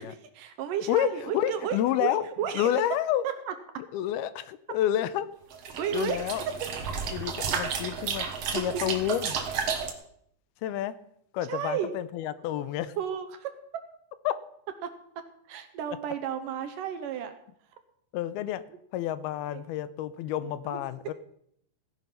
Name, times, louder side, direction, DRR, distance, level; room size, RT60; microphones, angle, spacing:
voice 1, 0.0-2.7 3.2-3.5 5.8-6.3 8.7-8.9 11.5-11.9 13.0-13.5 14.8-14.9 15.5-17.3 19.4-19.6 20.4-20.8, right 8 dB, 70° right, 9 dB, 2.3 m, -33 dB
voice 2, 1.3-2.2 2.5-3.2 3.9-5.3 5.9-6.4 7.1-9.4 10.6-11.0 11.3-12.9 14.3-14.4 18.1-18.6 18.9-21.1, left 12 dB, 85° left, 15 dB, 2.6 m, -29 dB
sound 1, 5.5-9.9, right 6 dB, 55° right, 2.1 m, -32 dB
16.5 x 10.5 x 5.6 m, 0.69 s
omnidirectional pair, 4.4 m